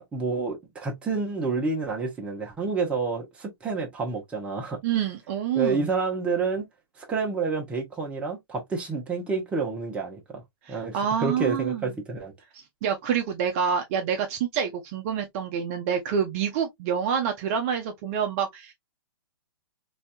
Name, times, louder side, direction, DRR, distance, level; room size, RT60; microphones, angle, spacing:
voice 1, 0.1-4.8 5.5-6.7 7.0-10.4 10.7-12.3, right 4 dB, 10° right, 0.9 m, -29 dB
voice 2, 4.8-5.9 10.6-11.9 12.5-18.7, right 8 dB, 30° right, 0.6 m, -27 dB
4.1 x 2.7 x 2.2 m
hypercardioid pair, 155°, 13 cm